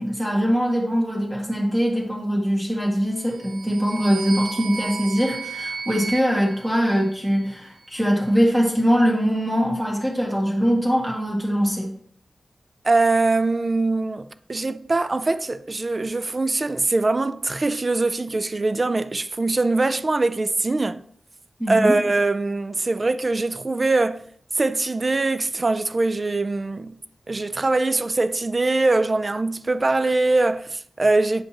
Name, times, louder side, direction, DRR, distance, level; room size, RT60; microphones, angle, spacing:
voice 1, 0.0-12.0 21.6-22.0, equal, 15° right, 1.9 m, -22 dB
sound 1, 3.2-7.5, right 4 dB, 75° right, 0.6 m, -35 dB
voice 2, 12.8-21.0 21.7-24.2 24.6-26.9 27.3-31.4, right 2 dB, 35° right, 0.4 m, -22 dB
8.6 x 5.2 x 2.9 m
wide cardioid pair, 95°, 0 cm